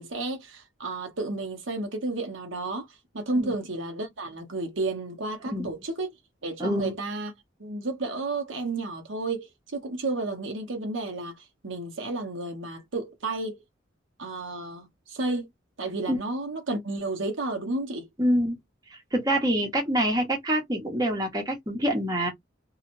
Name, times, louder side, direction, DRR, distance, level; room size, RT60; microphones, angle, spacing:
voice 1, 0.0-2.9 3.1-6.1 6.4-7.3 7.6-13.6 14.2-15.5 15.8-18.1, right 2 dB, 85° right, 1.0 m, -32 dB
voice 2, 6.6-6.9 16.1-16.2 18.2-18.6 18.9-22.3, equal, 20° right, 1.0 m, -26 dB
2.8 x 2.4 x 2.6 m
head